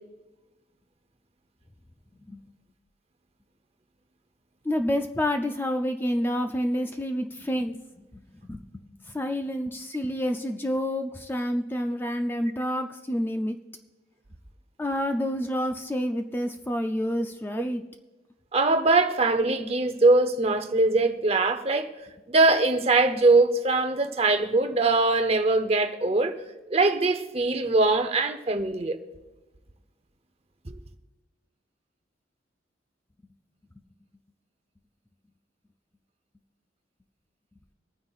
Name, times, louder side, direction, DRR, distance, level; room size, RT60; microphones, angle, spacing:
voice 1, 4.6-8.2 8.5-8.6 9.1-13.6 14.8-17.8, equal, 10° left, 0.4 m, -28 dB
voice 2, 18.5-21.9 22.3-26.4 26.7-29.0 30.7-30.8, right 3 dB, 35° right, 0.7 m, -22 dB
24.0 x 9.4 x 2.4 m
head